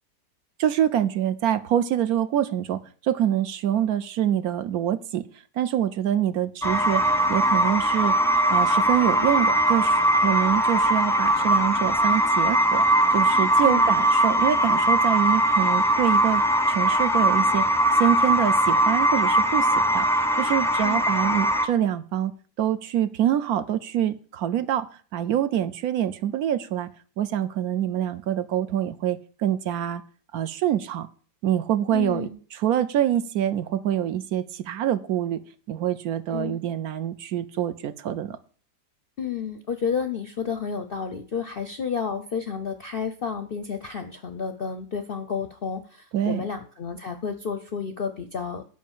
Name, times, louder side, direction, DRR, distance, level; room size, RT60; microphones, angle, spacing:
voice 1, 0.6-5.2 5.6-7.0 7.3-8.2 8.5-12.9 13.1-17.7 18.0-20.1 20.4-24.9 25.1-26.9 27.2-30.0 30.3-31.1 31.4-35.4 35.7-38.4 46.1-46.5, right 10 dB, 70° right, 12 dB, 1.0 m, -25 dB
sound 1, 6.6-21.7, right 1 dB, 5° left, 0.6 m, -21 dB
voice 2, 31.9-32.4 36.3-36.6 39.2-48.6, left 6 dB, 55° left, 8 dB, 0.6 m, -31 dB
9.4 x 5.2 x 7.3 m, 0.43 s
omnidirectional pair, 1.8 m